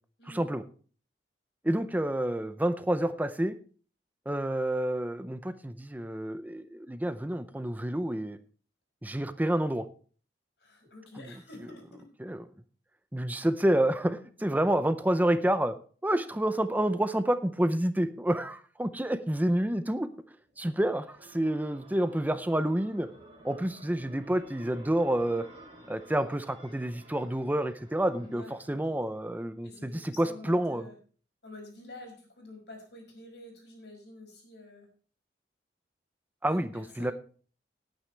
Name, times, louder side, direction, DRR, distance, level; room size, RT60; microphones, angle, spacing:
voice 1, 0.3-0.6 1.6-3.5 4.3-8.4 9.0-9.9 12.2-12.5 13.1-15.7 16.0-20.1 20.6-23.1 23.4-25.4 25.9-30.9 36.4-37.1, right 1 dB, 10° right, 11 dB, 0.5 m, -29 dB
voice 2, 10.6-12.1 28.2-28.9 29.6-31.0 31.4-34.9 36.5-37.1, left 2 dB, 70° left, 2 dB, 5.8 m, -49 dB
sound 1, 20.5-29.3, right 1 dB, 30° right, 5.1 m, -53 dB
18.5 x 9.0 x 3.3 m, 0.42 s
head